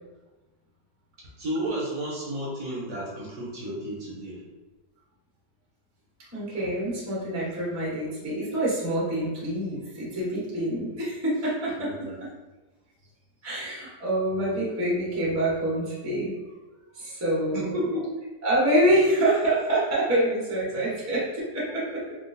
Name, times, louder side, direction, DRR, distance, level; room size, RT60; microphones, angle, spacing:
voice 1, 1.4-4.4 11.8-12.1 17.5-18.0 20.7-20.8, right 1 dB, 60° right, -6 dB, 1.0 m, -32 dB
voice 2, 6.3-11.9 13.4-16.3 16.9-17.9 18.4-22.1, right 1 dB, 20° right, -8 dB, 0.4 m, -26 dB
3.7 x 2.3 x 2.5 m, 1.1 s
omnidirectional pair, 2.0 m